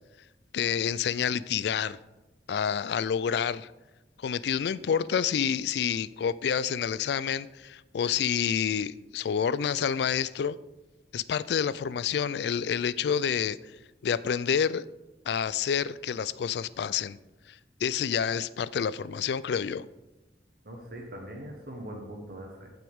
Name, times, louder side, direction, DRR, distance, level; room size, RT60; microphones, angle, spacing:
voice 1, 0.5-2.0 2.5-3.7 4.2-10.6 11.1-13.6 14.0-14.8 15.3-17.2 17.5-19.9, left 7 dB, 65° left, 0.3 m, -28 dB
voice 2, 20.6-22.7, right 1 dB, 60° right, 1.3 m, -41 dB
15.0 x 6.0 x 3.6 m
head